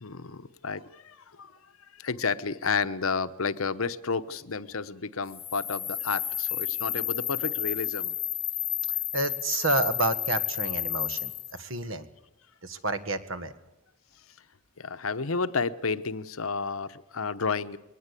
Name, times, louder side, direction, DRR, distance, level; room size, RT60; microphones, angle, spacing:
voice 1, 0.0-1.5 2.0-8.2 14.8-17.8, left 4 dB, 85° left, 1.0 m, -31 dB
sound 1, 5.3-11.6, left 11 dB, 30° left, 0.8 m, -31 dB
voice 2, 9.1-12.1 12.6-13.5, right 2 dB, 65° right, 1.6 m, -30 dB
22.0 x 19.0 x 8.4 m
head